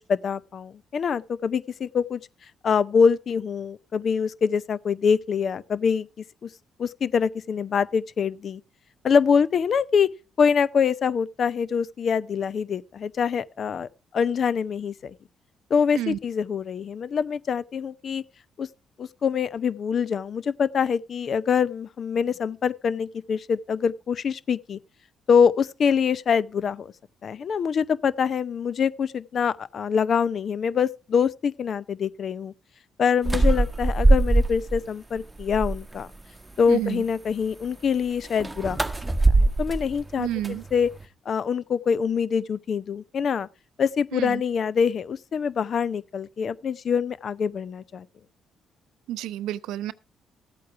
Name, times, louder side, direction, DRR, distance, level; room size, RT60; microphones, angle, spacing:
voice 1, 0.1-2.2 2.6-6.1 6.4-6.5 6.8-8.6 9.0-10.1 10.4-13.9 14.1-15.1 15.7-18.2 18.6-18.7 19.0-24.8 25.3-26.9 27.2-32.5 33.0-36.1 36.6-38.8 39.3-40.9 41.3-43.5 43.8-48.0, left 6 dB, 55° left, 0.6 m, -24 dB
sound 1, 33.2-34.8 35.2-36.0 38.2-41.1, right 2 dB, 15° right, 0.9 m, -22 dB
voice 2, 36.7-37.0 40.2-40.6 44.1-44.4 49.1-49.9, right 13 dB, 75° right, 0.5 m, -30 dB
14.0 x 8.5 x 4.6 m
hypercardioid pair, 50°, 0 cm